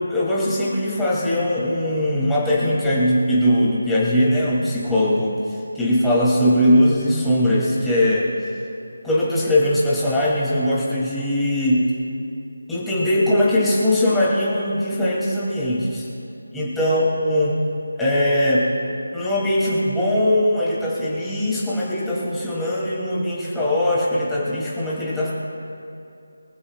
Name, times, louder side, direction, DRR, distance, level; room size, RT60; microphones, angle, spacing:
voice 1, 0.1-5.4 5.7-8.3 9.0-11.9 12.7-16.0 16.5-17.6 18.0-18.7 19.1-25.3, left 1 dB, 5° left, -7 dB, 2.8 m, -20 dB
24.5 x 14.5 x 2.4 m, 2.6 s
figure-of-eight pair, 160°, 0 cm